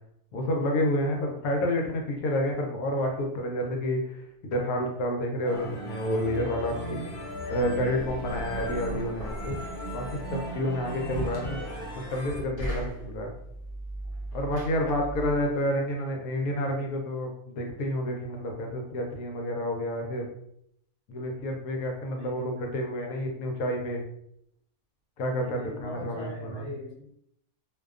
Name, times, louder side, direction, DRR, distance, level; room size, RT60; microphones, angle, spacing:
voice 1, 0.3-7.1 7.5-9.6 9.9-11.6 12.1-13.3 14.3-20.3 21.1-24.0 25.2-26.7, left 1 dB, 75° left, 1 dB, 1.0 m, -29 dB
sound 1, 5.4-12.4, equal, 55° left, 0.9 m, -37 dB
Knock, 7.6-15.5, right 1 dB, 30° left, 0.8 m, -39 dB
voice 2, 14.8-15.3 22.2-22.7 25.3-27.1, left 2 dB, 60° right, -5 dB, 0.7 m, -42 dB
2.5 x 2.2 x 2.4 m, 0.74 s
omnidirectional pair, 1.6 m